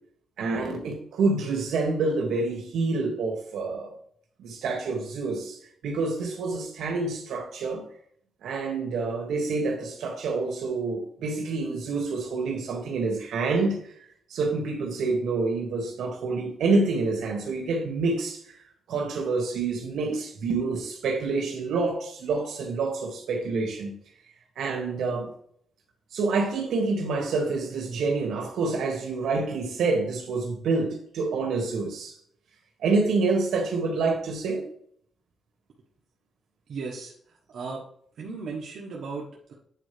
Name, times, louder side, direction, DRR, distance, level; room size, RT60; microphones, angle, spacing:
voice 1, 0.4-3.9 4.4-5.6 5.8-7.9 8.4-13.8 14.3-18.6 18.9-24.0 24.6-25.3 26.1-32.1 32.8-34.7, right 3 dB, 80° right, 2.0 m, -27 dB
voice 2, 36.7-37.1 37.5-37.8 38.2-39.5, right 4 dB, 65° right, 1.3 m, -36 dB
8.9 x 4.4 x 3.3 m
cardioid pair, 135°, 0 cm